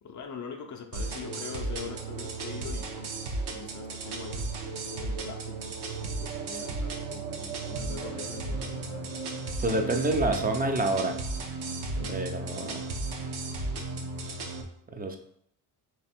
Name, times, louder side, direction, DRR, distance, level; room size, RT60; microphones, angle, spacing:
voice 1, 0.0-3.1 3.5-9.1 9.5-9.6 10.2-10.4 11.9-12.2 14.4-14.5, left 6 dB, 40° left, 4 dB, 0.6 m, -43 dB
sound 1, 0.9-14.6, right 3 dB, 60° right, 0.9 m, -35 dB
voice 2, 9.6-11.2 12.1-12.9 14.9-15.2, right 2 dB, 20° right, 5 dB, 0.5 m, -28 dB
3.3 x 3.1 x 4.3 m, 0.71 s
cardioid pair, 95°, 46 cm